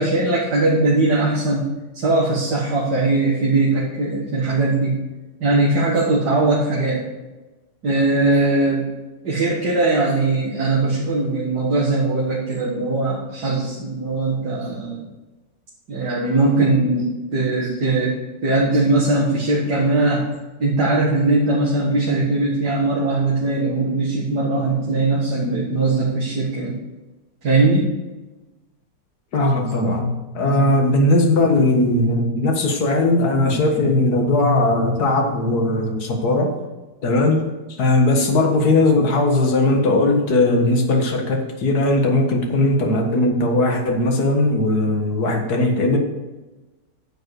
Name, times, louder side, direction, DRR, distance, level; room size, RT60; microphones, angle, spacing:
voice 1, 0.0-1.7 1.9-5.0 5.4-7.0 7.8-8.9 9.2-15.0 15.9-18.1 18.4-20.2 20.6-26.8 27.4-27.9, right 2 dB, 65° right, -5 dB, 2.3 m, -20 dB
voice 2, 29.3-36.5 37.0-37.4 37.7-46.0, left 2 dB, 60° left, 3 dB, 2.1 m, -18 dB
10.5 x 7.6 x 4.8 m, 1.1 s
omnidirectional pair, 1.9 m